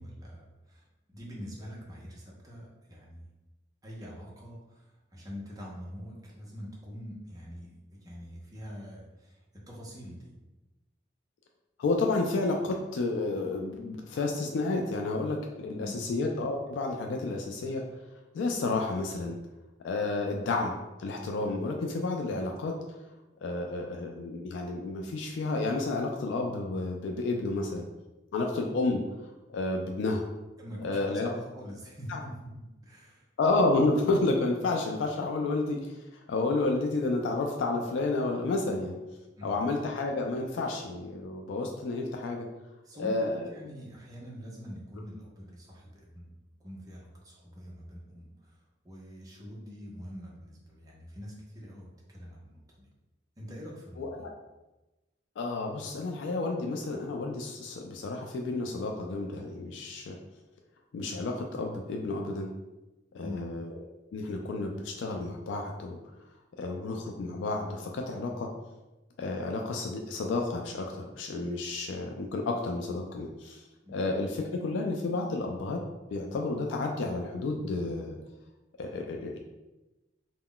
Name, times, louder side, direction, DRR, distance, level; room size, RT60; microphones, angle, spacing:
voice 1, 0.0-3.3 3.8-9.4 9.7-10.3 15.7-16.0 30.6-33.3 39.4-39.5 42.8-46.3 46.6-48.6 48.8-52.9 53.4-54.3 63.2-63.4 73.8-74.0, equal, 20° right, -4 dB, 0.6 m, -44 dB
voice 2, 11.8-17.8 18.3-19.4 19.8-20.7 21.0-22.7 23.4-27.8 28.3-29.0 29.5-30.2 30.8-31.3 32.1-32.2 33.4-35.9 36.3-39.0 39.4-42.5 43.0-43.5 54.0-54.3 55.4-60.2 60.9-62.5 63.1-63.8 64.1-66.0 66.6-68.5 69.2-73.6 73.9-75.8 76.1-78.2 78.8-79.4, left 3 dB, 80° left, 2 dB, 0.3 m, -31 dB
2.2 x 2.0 x 3.7 m, 1.0 s
head